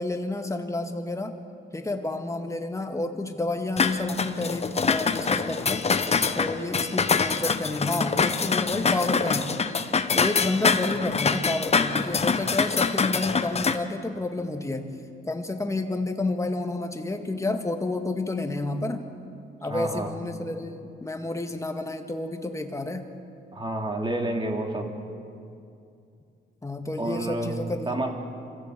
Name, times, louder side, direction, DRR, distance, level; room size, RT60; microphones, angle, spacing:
voice 1, 0.0-1.4 1.7-5.9 6.3-9.6 10.1-15.0 15.3-19.1 19.6-23.1 26.6-28.1, left 2 dB, 15° left, 5 dB, 2.1 m, -30 dB
sound 1, 3.8-13.8, left 5 dB, 30° left, 1.1 m, -25 dB
voice 2, 19.6-20.1 23.5-24.9 27.0-27.5 27.9-28.1, right 1 dB, 25° right, 2 dB, 3.0 m, -29 dB
26.0 x 16.0 x 8.0 m, 2.5 s
cardioid pair, 90°, 20 cm